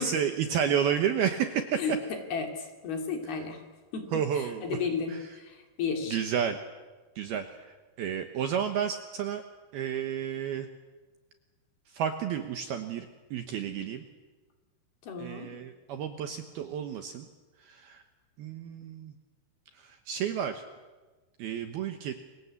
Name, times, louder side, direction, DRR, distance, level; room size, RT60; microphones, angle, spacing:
voice 1, 0.0-1.8 4.1-4.8 5.1-5.2 6.1-6.6 7.2-7.6 8.0-9.4 9.7-10.7 11.9-14.0 15.2-17.3 17.7-18.0 18.4-19.1 19.8-20.6 21.4-22.1, right 8 dB, 70° right, 7 dB, 2.6 m, -31 dB
voice 2, 1.8-3.6 3.9-6.2 15.0-15.5, left 5 dB, 55° left, 4 dB, 4.4 m, -33 dB
29.5 x 24.0 x 8.4 m, 1.3 s
omnidirectional pair, 5.7 m